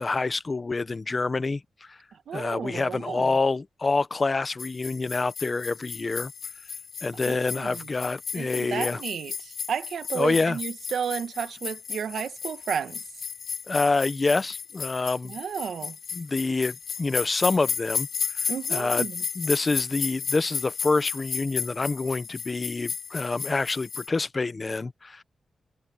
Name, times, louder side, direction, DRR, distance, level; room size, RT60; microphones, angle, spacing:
voice 1, 0.0-1.6 1.9-2.0 2.3-6.3 7.0-9.0 10.1-10.6 13.7-15.3 16.1-18.1 18.3-19.1 19.4-25.2, left 3 dB, 30° left, 0.8 m, -27 dB
voice 2, 2.3-3.3 7.3-7.9 8.3-13.0 15.2-16.0 18.5-19.2, right 7 dB, 85° right, 1.6 m, -33 dB
sound 1, 4.6-24.1, left 6 dB, 65° left, 2.9 m, -34 dB
wide cardioid pair, 150°, 0 cm